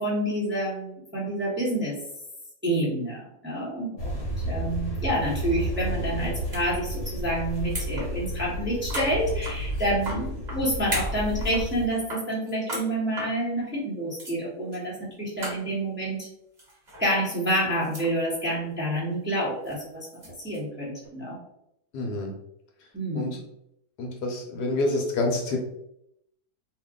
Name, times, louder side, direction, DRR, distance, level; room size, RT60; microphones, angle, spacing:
voice 1, 0.0-2.0 2.6-4.1 4.5-16.3 17.0-20.1 20.4-21.4 22.9-23.4, right 1 dB, 10° right, -7 dB, 0.8 m, -28 dB
sound 1, 4.0-11.9, equal, 40° left, 1.1 m, -31 dB
sound 2, 6.4-6.6 6.9-7.2 7.5-8.1 8.4-8.5 8.8-10.6 10.9-11.6 11.9-12.9 13.2-13.3 13.9-14.0 14.2-14.3 14.7-14.8 15.1-15.2 15.4-15.6 16.6-17.0 17.4-18.1 18.5-18.7 19.7-20.6, right 1 dB, 30° right, 1.1 m, -36 dB
voice 2, 21.9-22.3 23.1-23.4 24.0-25.6, left 2 dB, 75° left, 1 dB, 1.2 m, -27 dB
2.8 x 2.5 x 3.5 m, 0.79 s
omnidirectional pair, 1.9 m